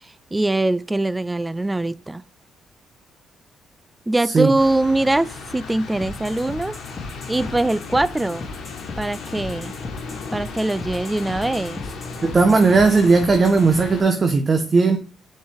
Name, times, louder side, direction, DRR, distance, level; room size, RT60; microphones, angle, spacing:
voice 1, 0.3-2.2 4.1-6.7 7.3-8.5 9.0-9.7 10.3-11.8, right 2 dB, 15° right, 0.3 m, -22 dB
sound 1, 4.6-14.0, left 4 dB, 70° left, 1.4 m, -35 dB
sound 2, 6.0-13.7, left 3 dB, 30° left, 2.0 m, -37 dB
voice 2, 12.2-15.0, right 4 dB, 35° right, 0.8 m, -16 dB
6.1 x 4.5 x 3.6 m
cardioid pair, 90°, 0 cm